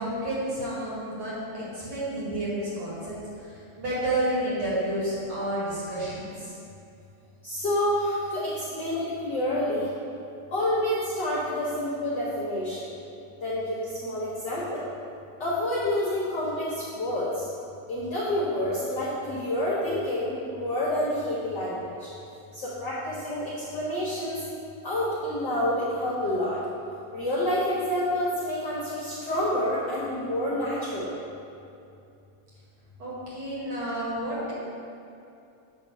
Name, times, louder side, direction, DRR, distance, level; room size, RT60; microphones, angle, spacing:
voice 1, 0.0-6.5 33.0-34.5, right 1 dB, 45° right, -8 dB, 2.2 m, -30 dB
voice 2, 7.4-9.9 10.5-12.8 13.4-14.8 15.4-17.5 17.9-22.1 22.5-23.4 23.7-24.4 24.8-26.6 27.1-31.1, left 1 dB, 90° left, -8 dB, 0.9 m, -28 dB
8.5 x 3.5 x 6.4 m, 2.6 s
omnidirectional pair, 4.0 m